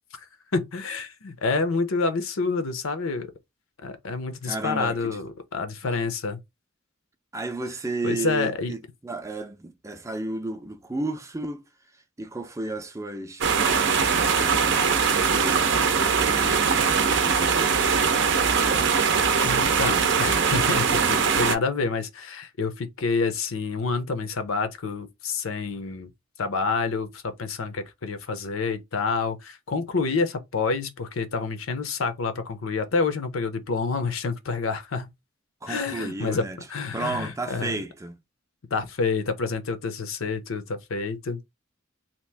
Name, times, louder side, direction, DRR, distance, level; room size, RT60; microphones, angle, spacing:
voice 1, 0.5-3.3 3.8-6.4 8.0-8.7 19.4-26.1 26.4-35.1 35.7-36.4 36.7-37.8 38.7-41.4, left 4 dB, 80° left, 0.6 m, -28 dB
voice 2, 4.4-5.2 7.3-11.6 12.2-17.8 35.6-36.6 36.9-38.2, right 2 dB, 15° right, 0.5 m, -33 dB
sound 1, 13.4-21.6, right 6 dB, 60° right, 0.6 m, -21 dB
2.9 x 2.5 x 3.3 m
head